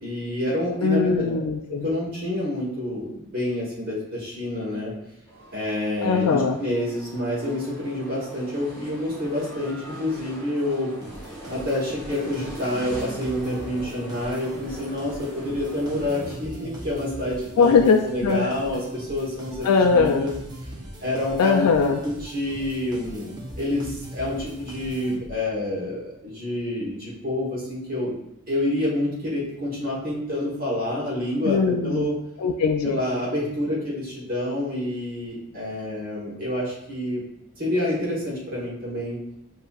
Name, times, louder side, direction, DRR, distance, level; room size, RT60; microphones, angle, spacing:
voice 1, 0.0-1.2 1.8-4.9 5.5-10.9 11.5-18.8 19.1-19.7 19.9-20.3 21.0-21.7 22.0-23.8 24.1-28.1 28.5-32.1 32.8-37.2 37.6-39.2, left 1 dB, 40° right, -6 dB, 1.3 m, -28 dB
voice 2, 0.8-1.9 6.0-6.6 17.6-18.5 19.6-20.3 21.4-22.0 31.4-32.1 32.4-33.0, left 5 dB, 90° left, 4 dB, 0.4 m, -20 dB
sound 1, 5.3-16.4, right 1 dB, 20° left, 1.3 m, -41 dB
sound 2, 11.0-25.6, right 1 dB, 20° right, 0.8 m, -40 dB
7.6 x 2.8 x 2.4 m, 0.81 s
head